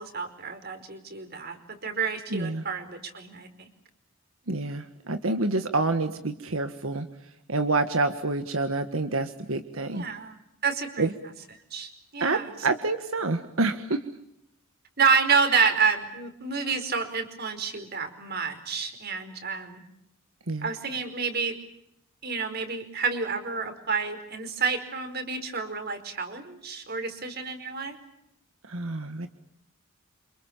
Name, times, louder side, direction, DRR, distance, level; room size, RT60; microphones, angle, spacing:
voice 1, 0.0-3.7 9.9-10.4 10.6-11.1 11.7-12.5 15.0-19.8 20.6-21.5 22.2-28.0, right 5 dB, 50° right, 8 dB, 5.0 m, -29 dB
voice 2, 2.3-2.6 4.5-7.1 7.5-10.1 11.0-11.1 12.2-14.0 20.5-20.7 28.7-29.3, right 3 dB, 85° right, 8 dB, 1.6 m, -27 dB
29.0 x 27.5 x 7.3 m, 0.78 s
head